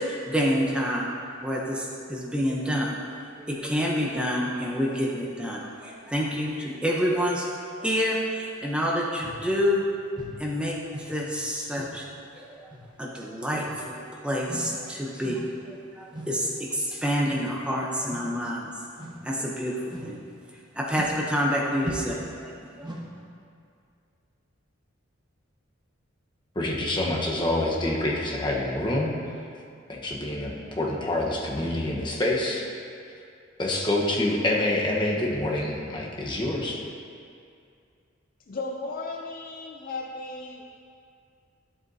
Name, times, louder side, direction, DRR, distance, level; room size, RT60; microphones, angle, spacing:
voice 1, 0.1-1.1 1.4-2.9 3.4-7.5 7.8-9.8 10.4-12.0 12.3-12.7 13.0-13.9 14.2-15.4 15.9-18.7 19.2-20.2 20.8-22.5 22.8-22.9, equal, 5° right, -3 dB, 0.7 m, -28 dB
sound 1, 9.2-9.4 10.1-10.4 10.9-11.2 11.7-12.0 12.7-12.9 13.5-13.8 14.4-14.8 15.2-15.5 16.1-16.4 17.2-17.5 18.1-18.4 19.0-19.3 19.9-20.2 20.9-21.2 21.8-22.2 22.8-23.1, right 1 dB, 20° right, 1.1 m, -39 dB
voice 2, 26.5-29.1 29.9-32.7 33.6-36.8, left 1 dB, 25° left, -3 dB, 1.1 m, -26 dB
voice 3, 38.5-40.6, left 3 dB, 45° left, 1 dB, 0.5 m, -35 dB
11.5 x 7.7 x 2.7 m, 2.4 s
head